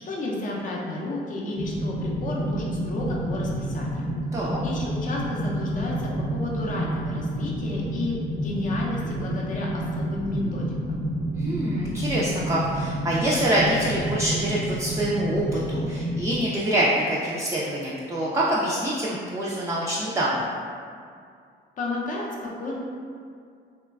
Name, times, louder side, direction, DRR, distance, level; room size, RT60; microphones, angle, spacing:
voice 1, 0.1-4.0 4.6-11.0 21.8-22.8, left 2 dB, 40° left, -3 dB, 0.5 m, -31 dB
sound 1, 1.5-16.4, right 1 dB, 5° left, 0.7 m, -29 dB
voice 2, 11.4-20.4, right 1 dB, 15° right, -6 dB, 0.3 m, -25 dB
3.0 x 2.2 x 2.3 m, 2.3 s
cardioid pair, 90°, 20 cm